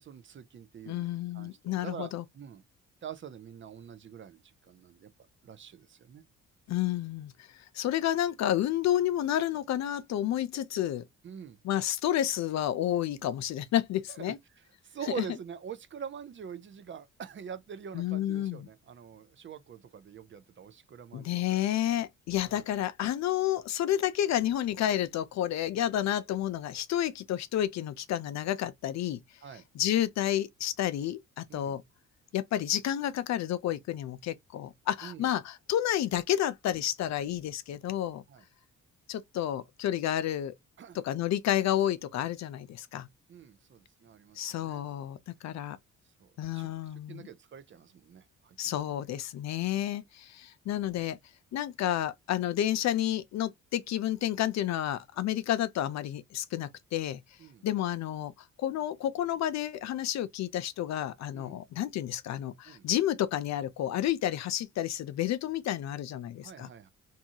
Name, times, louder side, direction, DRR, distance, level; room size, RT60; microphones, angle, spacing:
voice 1, 0.0-2.6 3.0-5.1 5.4-6.2 11.2-11.6 14.1-14.3 14.8-21.6 22.4-22.6 29.4-29.6 31.5-31.8 35.0-35.3 38.3-38.4 40.8-41.0 43.3-44.8 46.2-46.7 47.1-48.8 57.4-57.7 61.3-61.6 62.7-62.9 66.4-66.9, right 8 dB, 40° right, 0.5 m, -45 dB
voice 2, 0.9-2.2 6.7-7.3 7.7-11.0 11.6-14.4 15.2-15.3 17.9-18.7 21.1-29.2 29.7-31.8 32.3-38.2 39.1-40.5 40.9-43.1 44.4-45.8 46.4-47.3 48.6-51.2 51.5-57.2 57.6-58.3 58.6-66.7, left 12 dB, 65° left, 0.5 m, -30 dB
2.7 x 2.3 x 2.7 m
cardioid pair, 90°, 30 cm